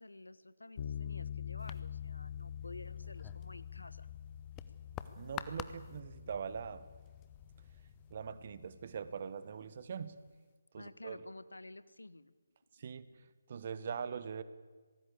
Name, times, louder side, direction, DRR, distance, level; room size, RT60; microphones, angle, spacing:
voice 1, 0.0-4.1 10.7-12.3 12.8-12.9, left 2 dB, 75° left, 15 dB, 1.2 m, -52 dB
sound 1, 0.8-8.9, left 9 dB, 40° left, 1.0 m, -46 dB
sound 2, 1.6-8.1, left 12 dB, 15° left, 0.8 m, -51 dB
voice 2, 5.2-6.8 8.1-10.2 10.7-11.2 12.7-14.4, right 6 dB, 40° right, 14 dB, 1.4 m, -42 dB
25.5 x 18.5 x 8.4 m, 1.4 s
figure-of-eight pair, 145°, 0 cm